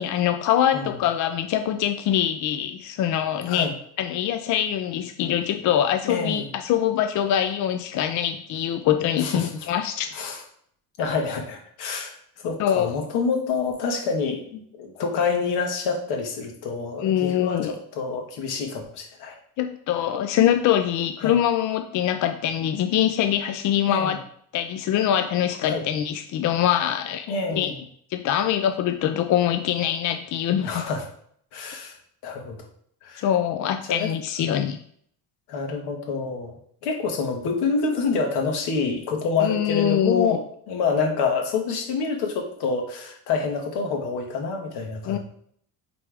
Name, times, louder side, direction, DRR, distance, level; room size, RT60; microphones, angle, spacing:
voice 1, 0.0-3.7 4.0-10.1 12.6-12.9 17.0-17.7 19.6-24.2 24.5-27.7 28.1-30.8 33.2-34.8 39.4-40.4 45.1-45.2, left 10 dB, 50° left, 6 dB, 0.5 m, -23 dB
voice 2, 6.0-6.5 9.2-9.5 10.1-10.4 11.0-19.4 21.2-21.4 23.9-24.2 25.6-25.8 27.3-27.8 30.6-31.1 31.5-32.0 32.2-32.6 33.0-33.2 33.9-34.1 35.5-36.5 36.8-40.4 40.7-45.2, left 4 dB, 80° left, 2 dB, 1.6 m, -27 dB
8.4 x 3.4 x 3.5 m, 0.64 s
cardioid pair, 135°, 38 cm